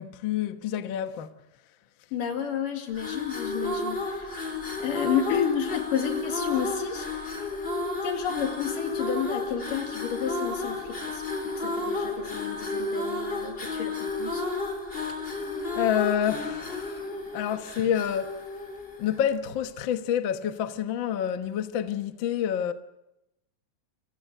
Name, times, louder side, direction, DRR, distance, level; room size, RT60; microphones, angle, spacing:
voice 1, 0.0-1.3 15.4-18.5 19.0-22.7, left 9 dB, 60° left, 1.2 m, -28 dB
voice 2, 2.1-4.4 4.8-7.4 8.0-11.2 11.6-14.4, left 8 dB, 80° left, 4.0 m, -31 dB
sound 1, 2.9-19.3, left 2 dB, 15° left, 3.6 m, -32 dB
28.5 x 16.0 x 9.2 m
omnidirectional pair, 3.8 m